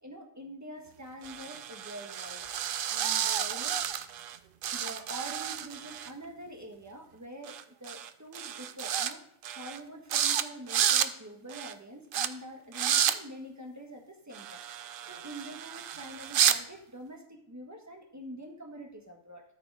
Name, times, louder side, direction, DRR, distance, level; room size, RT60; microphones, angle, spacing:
voice 1, 0.0-3.8 4.7-9.2 9.5-19.4, equal, 15° right, 2 dB, 1.5 m, -45 dB
sound 1, 1.2-4.4 4.6-6.1 7.5-7.6 7.9-8.1 8.3-9.1 9.4-9.8 10.1-10.4 10.7-11.1 11.5-11.7 12.1-12.3 12.7-13.1 14.3-16.6, right 9 dB, 60° right, 0.6 m, -30 dB
13.0 x 5.1 x 4.8 m, 0.69 s
omnidirectional pair, 1.4 m